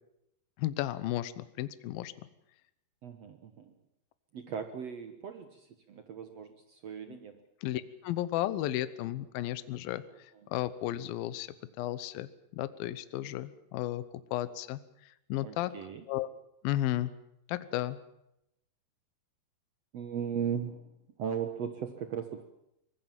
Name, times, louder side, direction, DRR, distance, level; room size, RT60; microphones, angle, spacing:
voice 1, 0.6-2.1 7.1-7.2 7.6-14.0 14.3-14.8 15.1-15.7 16.1-16.3 16.6-17.1 17.5-18.0, left 14 dB, 70° left, 14 dB, 2.5 m, -34 dB
voice 2, 3.0-3.8 4.3-7.4 10.1-10.5 15.4-16.0 19.9-22.4, right 7 dB, 65° right, 8 dB, 1.6 m, -38 dB
24.0 x 20.0 x 7.4 m, 0.80 s
omnidirectional pair, 4.8 m